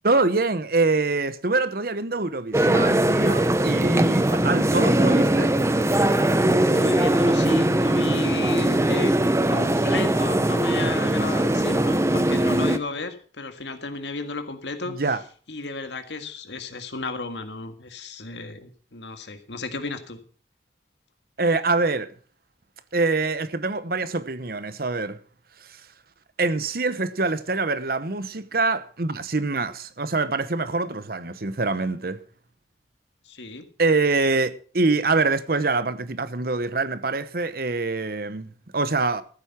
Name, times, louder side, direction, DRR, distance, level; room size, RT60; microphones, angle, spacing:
voice 1, 0.0-5.6 14.9-15.2 21.4-22.1 22.9-25.2 25.7-25.8 26.4-32.2 33.8-39.2, right 3 dB, 55° right, 0.9 m, -25 dB
sound 1, 2.5-12.8, right 1 dB, 15° right, 0.7 m, -21 dB
voice 2, 6.7-9.2 9.5-15.2 15.5-20.2 33.3-33.7, left 3 dB, 80° left, 1.8 m, -33 dB
14.0 x 8.3 x 5.8 m
head